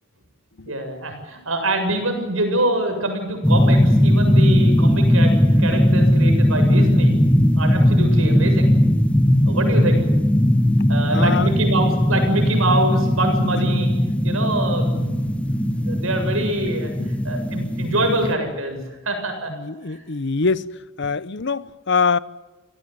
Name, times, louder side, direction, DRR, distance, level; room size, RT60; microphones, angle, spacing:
voice 1, 0.6-7.2 7.6-8.8 9.5-10.0 10.9-13.9 14.2-16.9 17.2-18.8 19.0-19.5 19.9-20.0, right 1 dB, 80° right, 7.7 m, -25 dB
sound 1, 3.4-18.3, equal, 5° left, 1.1 m, -18 dB
voice 2, 11.1-11.5 17.0-17.1 19.5-20.7 21.0-22.2, left 4 dB, 60° left, 0.9 m, -23 dB
28.0 x 18.0 x 9.5 m
head